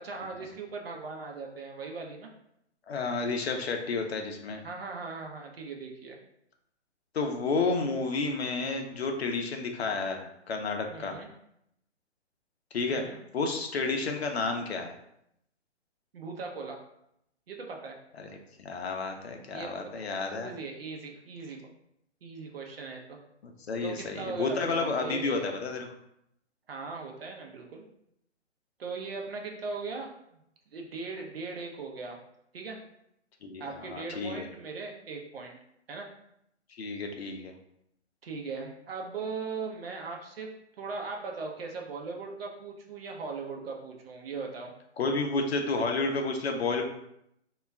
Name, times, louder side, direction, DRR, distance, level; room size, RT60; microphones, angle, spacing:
voice 1, 0.0-2.3 4.6-6.2 10.9-11.3 12.9-13.2 16.1-16.8 17.5-18.0 19.5-20.0 20.3-21.6 22.2-23.2 23.8-25.3 26.7-27.8 28.8-30.1 30.7-32.2 32.5-32.8 33.6-35.6 35.9-36.1 38.2-40.5 40.8-44.7, right 4 dB, 55° right, 1 dB, 0.6 m, -39 dB
voice 2, 2.9-4.6 7.1-11.1 12.7-13.0 13.3-14.9 18.2-18.3 18.6-20.5 23.7-25.9 33.4-34.5 36.7-37.5 45.0-46.8, left 3 dB, 60° left, 4 dB, 0.5 m, -31 dB
2.2 x 2.1 x 3.4 m, 0.77 s
figure-of-eight pair, 135°, 35 cm